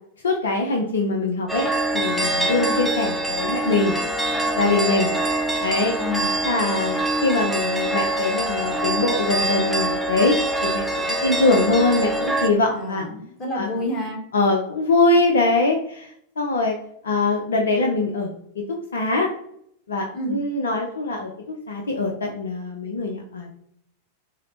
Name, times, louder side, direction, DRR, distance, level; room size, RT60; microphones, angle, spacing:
voice 1, 0.2-1.7 1.9-4.0 4.6-5.1 5.6-6.0 6.4-13.1 13.5-13.8 14.3-16.1 16.4-16.8 17.0-18.6 18.9-19.3 19.9-23.7, left 3 dB, 70° left, 2 dB, 0.5 m, -22 dB
sound 1, 1.5-12.5, right 1 dB, ahead, 0.6 m, -24 dB
voice 2, 6.0-6.3 12.7-14.2 20.1-20.4, left 2 dB, 30° left, -1 dB, 1.5 m, -29 dB
5.5 x 2.0 x 3.1 m, 0.70 s
figure-of-eight pair, 90°, 0 cm